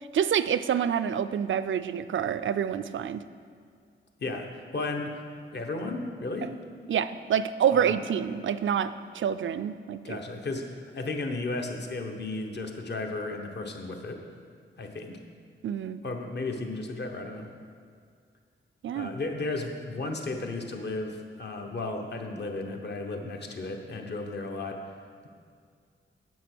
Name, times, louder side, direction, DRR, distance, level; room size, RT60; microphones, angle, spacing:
voice 1, 0.1-3.2 6.9-10.2 15.6-16.0 18.8-19.1, right 8 dB, 70° right, 12 dB, 0.4 m, -27 dB
voice 2, 4.7-5.1 5.5-6.5 7.7-7.9 10.0-14.2 14.8-15.2 16.0-17.5 18.9-24.8, left 2 dB, 55° left, 3 dB, 1.1 m, -34 dB
9.3 x 7.7 x 6.2 m, 2.1 s
wide cardioid pair, 135°, 21 cm